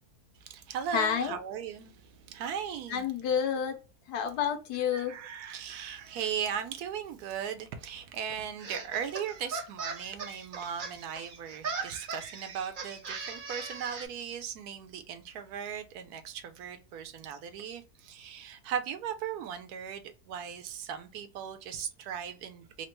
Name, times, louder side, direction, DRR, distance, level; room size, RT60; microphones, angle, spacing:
voice 1, 0.4-3.0 4.9-22.9, right 8 dB, 80° right, 1.1 m, -38 dB
voice 2, 0.9-1.4 2.9-3.8 4.1-5.1, left 7 dB, 90° left, 1.3 m, -29 dB
sound 1, 8.6-14.1, right 5 dB, 55° right, 0.5 m, -39 dB
3.2 x 2.1 x 3.0 m
omnidirectional pair, 1.7 m